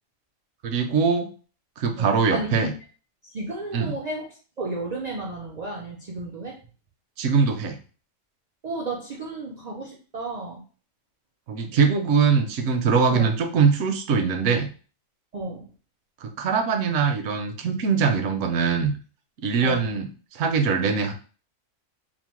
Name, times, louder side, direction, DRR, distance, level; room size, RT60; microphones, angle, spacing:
voice 1, 0.6-1.3 1.8-2.7 3.7-4.0 7.2-7.8 11.5-14.7 16.2-18.9 19.4-21.1, right 5 dB, 70° right, 5 dB, 0.8 m, -22 dB
voice 2, 2.0-2.7 3.3-4.3 4.6-6.6 8.6-10.6 13.1-13.3 15.3-15.6 19.6-19.9, right 2 dB, 90° right, -2 dB, 0.3 m, -33 dB
2.9 x 2.0 x 3.0 m, 0.37 s
omnidirectional pair, 1.4 m